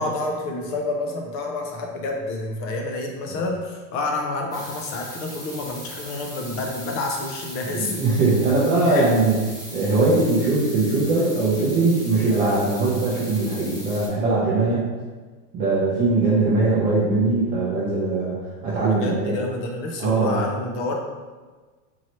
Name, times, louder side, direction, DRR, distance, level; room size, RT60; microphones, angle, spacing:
voice 1, 0.0-8.1 8.9-9.1 16.2-16.5 18.9-20.9, left 2 dB, 30° left, 1 dB, 0.5 m, -29 dB
sound 1, 4.5-14.1, equal, 10° left, 0.8 m, -39 dB
voice 2, 7.8-9.3 9.7-14.9 15.5-19.4 20.0-20.4, right 3 dB, 20° right, -8 dB, 0.6 m, -21 dB
4.4 x 2.8 x 3.0 m, 1.4 s
supercardioid pair, 140°, 44 cm